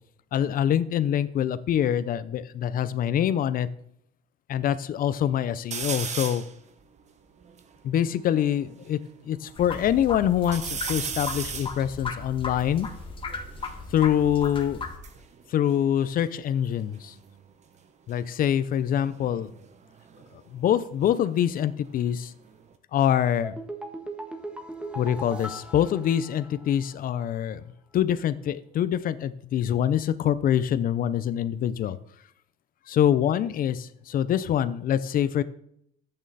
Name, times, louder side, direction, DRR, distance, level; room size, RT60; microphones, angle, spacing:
voice 1, 0.3-3.7 4.5-6.4 7.8-9.0 9.3-12.9 13.9-14.8 15.5-17.1 18.1-19.5 20.5-22.3 22.9-23.6 25.0-27.6 27.9-32.0 32.9-35.4, left 10 dB, 55° left, 14 dB, 0.6 m, -25 dB
sound 1, 5.7-6.5 7.1-7.2 7.4-8.9 9.4-10.0 10.4-13.8 14.7-16.7 16.9-17.4 19.0-21.6 22.0-22.8, right 6 dB, 40° right, 1.1 m, -38 dB
sound 2, 9.6-15.0, left 4 dB, 30° left, 1.7 m, -36 dB
sound 3, 23.4-26.9 27.1-27.2, right 1 dB, 5° right, 1.5 m, -39 dB
11.0 x 8.8 x 4.2 m, 0.71 s
cardioid pair, 110°, 17 cm